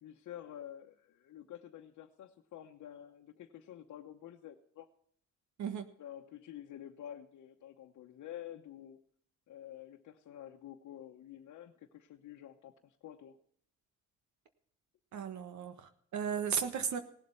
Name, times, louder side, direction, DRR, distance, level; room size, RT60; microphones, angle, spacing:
voice 1, 0.0-4.9 6.0-9.0 9.5-13.4, left 11 dB, 70° left, 1 dB, 1.1 m, -49 dB
voice 2, 15.1-17.0, right 7 dB, 70° right, 9 dB, 1.3 m, -35 dB
18.0 x 7.6 x 5.6 m, 0.64 s
cardioid pair, 90°, 30 cm